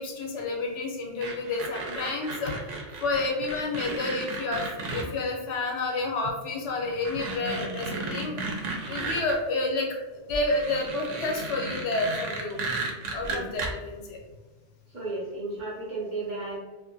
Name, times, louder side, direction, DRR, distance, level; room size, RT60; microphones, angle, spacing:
voice 1, 0.0-2.5 3.0-9.9 10.2-12.6 13.1-14.2, left 3 dB, 80° left, -1 dB, 1.0 m, -30 dB
sound 1, 1.2-5.1 6.2-6.3 6.8-9.4 10.3-13.7, right 3 dB, 80° right, 0.9 m, -34 dB
voice 2, 14.9-16.6, right 2 dB, 50° right, -5 dB, 0.6 m, -33 dB
2.5 x 2.5 x 2.5 m, 1.2 s
omnidirectional pair, 1.2 m